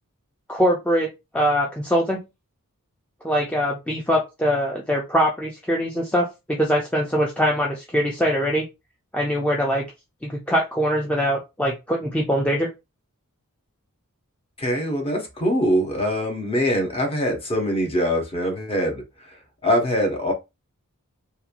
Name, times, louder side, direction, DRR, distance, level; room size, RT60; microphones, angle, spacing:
voice 1, 0.5-2.2 3.2-8.6 9.1-9.9 10.2-12.7, equal, 5° left, 0.4 m, -22 dB
voice 2, 14.6-19.0 19.6-20.3, equal, 25° left, 0.7 m, -23 dB
3.0 x 2.2 x 2.4 m
head